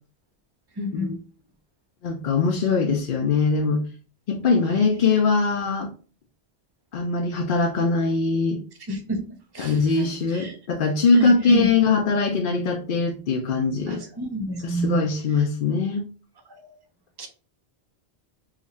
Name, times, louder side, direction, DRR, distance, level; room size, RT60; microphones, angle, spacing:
voice 1, 0.8-1.2 8.9-9.2 9.5-10.6 11.1-11.7 13.9-15.0 16.6-16.8 17.2-17.3, right 1 dB, 25° right, 0.6 m, -29 dB
voice 2, 2.0-3.9 4.3-5.9 6.9-8.6 9.6-14.0 14.6-16.0, left 4 dB, 60° left, 0.7 m, -22 dB
2.8 x 2.4 x 4.0 m
omnidirectional pair, 1.1 m